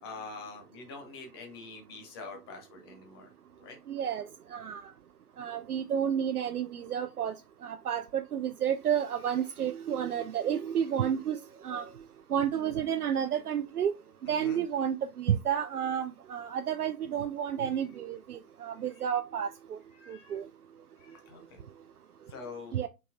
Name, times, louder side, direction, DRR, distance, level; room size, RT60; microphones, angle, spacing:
voice 1, 0.0-3.3 3.6-3.8 9.3-9.4 10.5-11.0 14.2-14.6 17.7-17.9 18.9-19.1 19.9-20.4 21.0-21.6 22.3-22.8, left 4 dB, 15° left, 0.6 m, -46 dB
voice 2, 3.9-4.2 4.5-4.8 5.4-7.3 7.6-11.4 11.6-11.9 12.3-13.9 14.3-19.8 20.1-20.4 22.7-22.9, right 9 dB, 75° right, 0.5 m, -31 dB
5.2 x 4.0 x 2.4 m
figure-of-eight pair, 120°, 46 cm